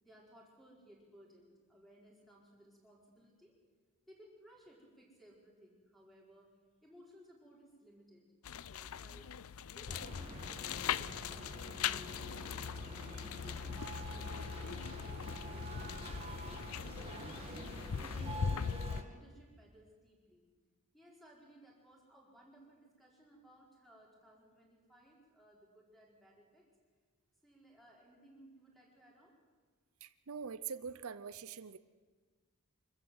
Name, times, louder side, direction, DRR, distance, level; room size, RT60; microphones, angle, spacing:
voice 1, 0.0-3.6 4.1-6.5 6.8-9.3 9.7-12.6 13.1-16.8 17.3-18.6 19.0-20.5 20.9-26.7 27.4-29.4, right 1 dB, ahead, -3 dB, 4.7 m, -61 dB
sound 1, 8.4-19.0, left 7 dB, 80° left, 0.5 m, -40 dB
sound 2, 9.9-19.0, right 2 dB, 25° right, 2.2 m, -48 dB
voice 2, 30.0-31.8, right 6 dB, 75° right, 14 dB, 0.7 m, -44 dB
25.0 x 14.5 x 7.8 m, 1.5 s
head